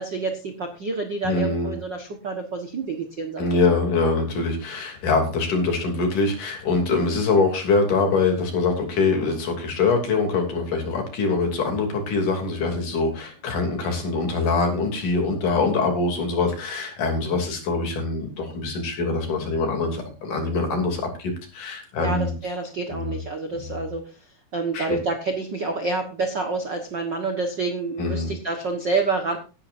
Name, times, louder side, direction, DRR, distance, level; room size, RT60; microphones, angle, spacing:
voice 1, 0.0-3.5 22.0-24.1 24.5-29.4, right 3 dB, 50° right, 4 dB, 1.4 m, -28 dB
voice 2, 1.2-1.8 3.4-22.3 22.9-23.2 23.7-23.8 24.7-25.0 28.0-28.3, left 3 dB, 65° left, 3 dB, 4.5 m, -24 dB
17.0 x 11.5 x 2.7 m, 0.33 s
omnidirectional pair, 4.1 m